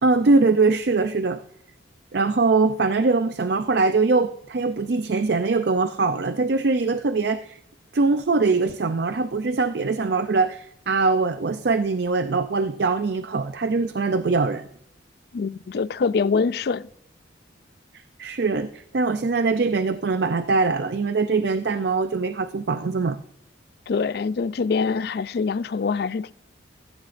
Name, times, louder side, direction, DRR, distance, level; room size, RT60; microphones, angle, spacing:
voice 1, 0.0-1.4 2.1-7.6 7.9-14.7 18.2-23.2, right 3 dB, 55° right, 0.5 m, -22 dB
voice 2, 15.3-16.9 23.9-26.3, left 5 dB, 55° left, 0.3 m, -24 dB
16.0 x 15.0 x 2.5 m
head